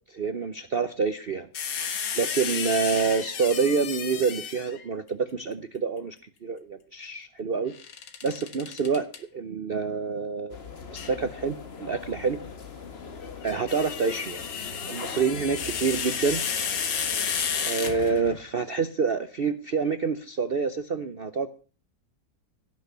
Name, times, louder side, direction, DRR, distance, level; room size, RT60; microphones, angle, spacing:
voice 1, 0.1-1.5 2.1-6.2 6.4-7.7 8.2-9.0 9.3-10.6 10.9-12.4 13.4-14.4 14.9-16.4 17.7-21.5, right 5 dB, 55° right, 11 dB, 0.6 m, -27 dB
sound 1, 1.5-4.9 7.7-9.2 11.0-11.2 13.3-18.4, left 7 dB, 70° left, 2.0 m, -32 dB
sound 2, 10.5-17.7, left 5 dB, 35° left, 1.4 m, -41 dB
17.0 x 6.4 x 6.8 m, 0.38 s
omnidirectional pair, 2.0 m